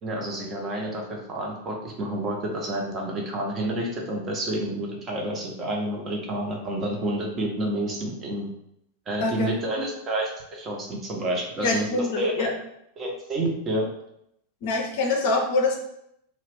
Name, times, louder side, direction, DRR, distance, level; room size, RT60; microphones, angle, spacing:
voice 1, 0.0-8.5 9.1-12.5 13.0-13.9, right 1 dB, 25° right, -1 dB, 0.6 m, -29 dB
voice 2, 9.2-9.8 11.6-12.5 14.6-15.8, left 3 dB, 50° left, 1 dB, 0.5 m, -25 dB
2.3 x 2.0 x 3.3 m, 0.77 s
figure-of-eight pair, 90°, 0 cm